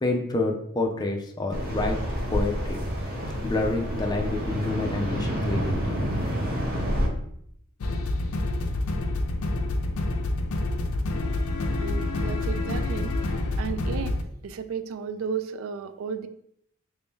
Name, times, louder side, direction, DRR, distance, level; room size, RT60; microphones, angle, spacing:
voice 1, 0.0-2.0 2.3-2.8 3.4-6.0, left 2 dB, 20° left, 2 dB, 0.4 m, -28 dB
sound 1, 1.5-7.1, equal, 45° right, 0.9 m, -28 dB
sound 2, 7.8-14.2, left 2 dB, 85° left, 0.4 m, -27 dB
voice 2, 11.8-13.2 13.5-16.3, right 6 dB, 65° right, 11 dB, 0.3 m, -34 dB
3.4 x 2.7 x 3.5 m, 0.70 s
head